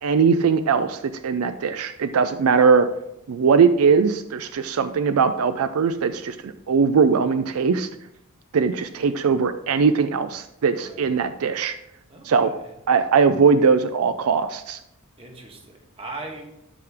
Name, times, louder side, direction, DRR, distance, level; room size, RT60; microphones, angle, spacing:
voice 1, 0.0-2.9 3.3-7.9 8.5-11.7 12.2-12.5 12.9-14.8, right 5 dB, 80° right, 11 dB, 0.4 m, -20 dB
voice 2, 10.7-11.2 12.1-12.7 15.2-16.5, right 2 dB, 25° right, 1 dB, 1.6 m, -39 dB
12.5 x 5.0 x 3.5 m, 0.82 s
head